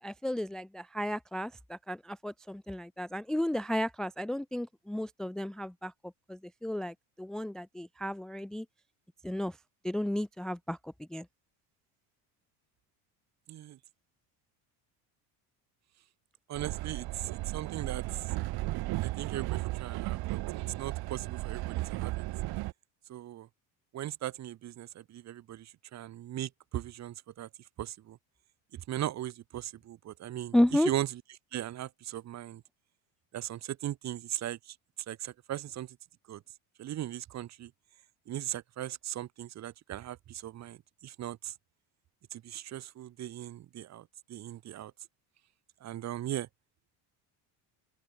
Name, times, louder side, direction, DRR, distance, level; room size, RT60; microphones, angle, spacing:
voice 1, 0.0-8.7 9.2-9.6 9.8-11.3 30.5-30.9, left 1 dB, ahead, 0.6 m, -33 dB
voice 2, 16.5-18.3 19.0-20.4 20.8-22.2 23.1-23.5 23.9-27.5 27.8-28.2 28.7-30.5 30.8-31.1 31.5-32.6 33.3-34.7 35.1-36.0 36.3-36.4 36.8-37.7 38.3-41.5 42.3-44.9 45.8-46.5, right 12 dB, 40° right, 1.6 m, -38 dB
Train, 16.5-22.7, right 19 dB, 60° right, 2.8 m, -35 dB
open air
cardioid pair, 150°, 43 cm